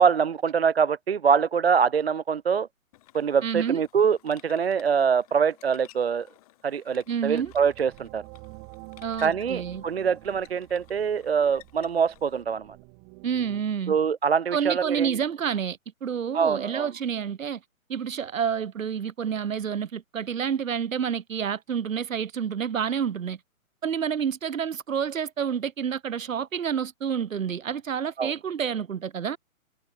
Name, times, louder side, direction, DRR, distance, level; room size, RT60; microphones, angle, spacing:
voice 1, 0.0-2.7 3.1-6.3 6.6-8.2 9.2-12.7 13.9-15.1 16.3-16.9 28.2-28.3, right 6 dB, 50° right, 0.4 m, -24 dB
sound 1, 2.9-12.4, left 17 dB, 25° left, 4.8 m, -56 dB
voice 2, 3.4-3.8 7.1-7.5 9.0-9.8 13.2-14.0 14.5-17.6 17.9-23.4 23.8-29.4, right 7 dB, 65° right, 1.6 m, -29 dB
sound 2, 7.1-13.6, right 40 dB or more, 15° right, 1.9 m, -48 dB
hypercardioid pair, 165°, 43 cm